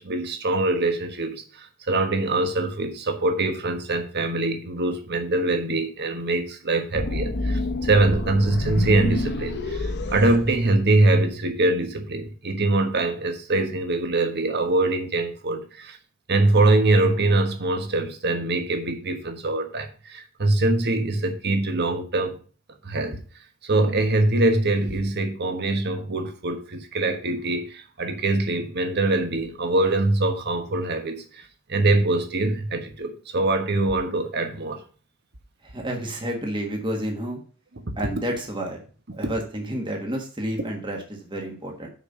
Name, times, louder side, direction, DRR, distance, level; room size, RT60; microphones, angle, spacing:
voice 1, 0.0-16.0 16.3-22.4 22.8-23.2 23.6-31.4 31.7-34.8 37.9-38.0 39.1-39.3, right 2 dB, 55° right, 6 dB, 1.3 m, -23 dB
sound 1, 6.9-11.2, left 1 dB, 55° left, 0.9 m, -28 dB
voice 2, 35.6-37.4 38.0-38.8 39.2-41.9, right 1 dB, 25° right, 1 dB, 1.5 m, -30 dB
6.4 x 5.2 x 6.7 m, 0.39 s
head